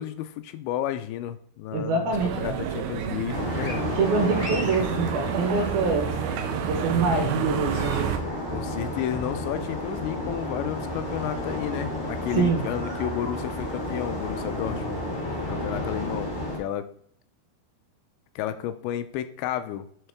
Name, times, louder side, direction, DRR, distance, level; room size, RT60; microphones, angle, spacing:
voice 1, 0.0-3.8 8.5-15.0 15.4-16.8 18.4-19.9, left 11 dB, 85° left, 10 dB, 2.8 m, -32 dB
voice 2, 1.7-2.6 4.0-6.1 6.6-8.1 12.4-12.7, right 4 dB, 70° right, 4 dB, 2.5 m, -25 dB
sound 1, 2.1-8.2, right 9 dB, 85° right, 2.9 m, -31 dB
sound 2, 3.3-16.6, left 1 dB, 35° left, 0.7 m, -32 dB
11.0 x 3.7 x 3.5 m, 0.62 s
omnidirectional pair, 5.1 m